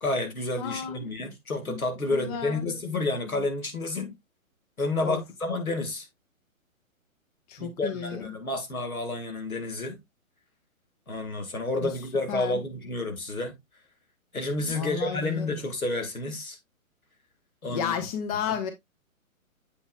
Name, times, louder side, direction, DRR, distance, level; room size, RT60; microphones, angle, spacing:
voice 1, 0.0-4.1 4.8-6.1 7.6-10.0 11.1-13.6 14.3-16.6 17.6-18.0, left 2 dB, 85° left, 2.2 m, -30 dB
voice 2, 0.6-1.1 1.7-1.8 2.1-2.6 3.2-3.4 5.0-5.2 7.5-8.3 11.8-11.9 12.3-12.6 14.6-15.6 17.7-18.7, left 7 dB, 30° left, 1.0 m, -33 dB
7.8 x 6.2 x 2.4 m
figure-of-eight pair, 130°, 41 cm